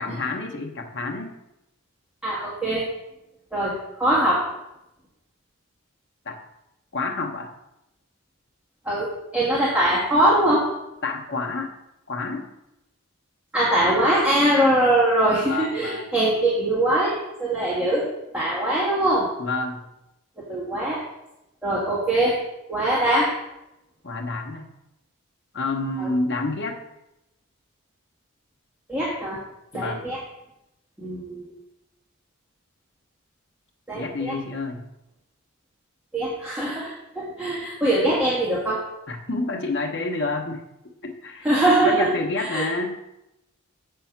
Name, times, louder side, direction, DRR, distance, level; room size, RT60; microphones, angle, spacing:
voice 1, 0.0-1.4 6.2-6.4 6.9-7.5 11.0-11.7 12.1-12.5 15.4-16.1 19.4-19.8 24.0-24.7 25.5-26.8 29.7-30.1 33.9-34.8 39.1-40.6 41.0-41.5 41.8-43.0, left 3 dB, 50° left, 2 dB, 1.0 m, -28 dB
voice 2, 2.2-2.8 3.5-4.4 8.8-10.6 13.5-18.1 18.3-19.3 20.5-21.0 21.6-22.4 22.7-23.3 26.0-26.1 28.9-29.4 29.7-30.2 31.0-31.5 33.9-34.3 36.1-38.8 41.4-42.1 42.4-42.7, right 1 dB, 5° right, -9 dB, 1.7 m, -22 dB
7.6 x 5.5 x 5.8 m, 0.90 s
head